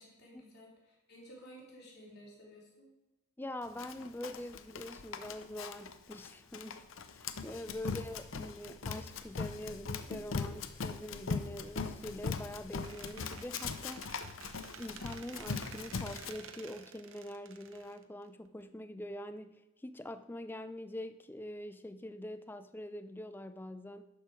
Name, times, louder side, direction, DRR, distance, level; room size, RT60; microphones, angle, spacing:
voice 1, 0.0-2.9, equal, 45° left, -4 dB, 3.2 m, -54 dB
voice 2, 3.4-14.3 14.8-24.0, left 1 dB, 10° left, 11 dB, 0.3 m, -44 dB
Run, 3.8-16.3, left 4 dB, 60° left, 0.6 m, -40 dB
Squeak, 12.8-18.6, right 6 dB, 60° right, 0.7 m, -52 dB
11.5 x 6.5 x 4.7 m, 1.0 s
head